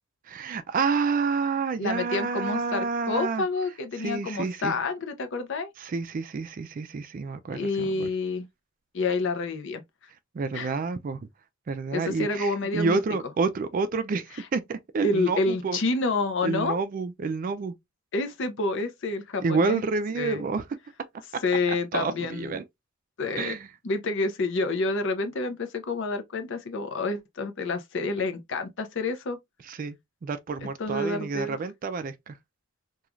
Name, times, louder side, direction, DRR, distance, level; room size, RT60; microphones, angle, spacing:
voice 1, 0.3-3.5 4.0-4.7 5.8-8.1 10.3-11.3 11.7-15.8 16.4-17.7 19.4-20.6 21.9-22.6 23.4-23.7 29.7-30.0 30.2-32.4, right 4 dB, 40° right, 0.3 m, -29 dB
voice 2, 1.8-5.7 7.5-8.5 8.9-9.8 10.5-10.7 11.9-13.0 15.0-16.8 18.1-19.8 20.2-20.4 21.4-22.6 23.2-23.6 23.8-29.4 30.8-31.6, left 3 dB, 60° left, 0.5 m, -28 dB
3.0 x 2.3 x 2.3 m
head